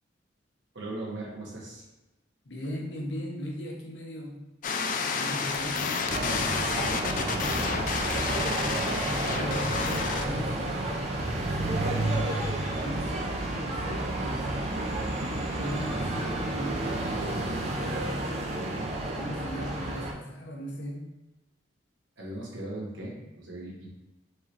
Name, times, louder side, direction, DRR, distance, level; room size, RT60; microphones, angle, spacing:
voice 1, 0.7-1.8 15.2-15.3 15.6-15.8 22.2-23.9, right 1 dB, 75° right, -4 dB, 1.2 m, -38 dB
voice 2, 2.4-4.4 5.2-7.2 9.0-12.1 12.8-14.8 15.6-17.3 17.8-18.1 18.7-21.1, equal, 70° left, 0 dB, 0.8 m, -38 dB
sound 1, 4.6-10.2, left 5 dB, 45° left, 0.3 m, -30 dB
sound 2, 6.1-20.1, right 2 dB, 35° right, 0.5 m, -31 dB
4.7 x 3.2 x 2.8 m, 1.1 s
head